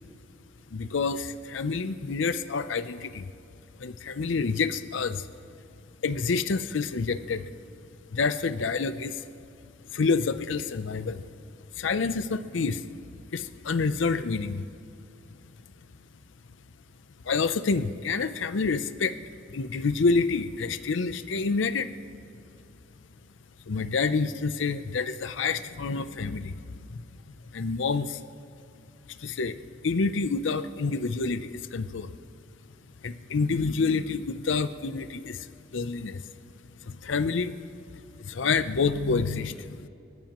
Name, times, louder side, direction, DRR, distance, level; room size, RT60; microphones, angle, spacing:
voice 1, 0.7-3.3 3.8-5.3 6.0-7.5 8.1-9.2 9.9-11.2 11.7-12.8 13.3-14.7 17.2-19.2 19.5-21.9 23.7-27.0 27.5-28.2 29.1-32.1 33.0-36.2 36.8-37.6 38.2-39.9, left 4 dB, 90° left, 12 dB, 0.6 m, -28 dB
27.0 x 14.5 x 3.0 m, 2.7 s
head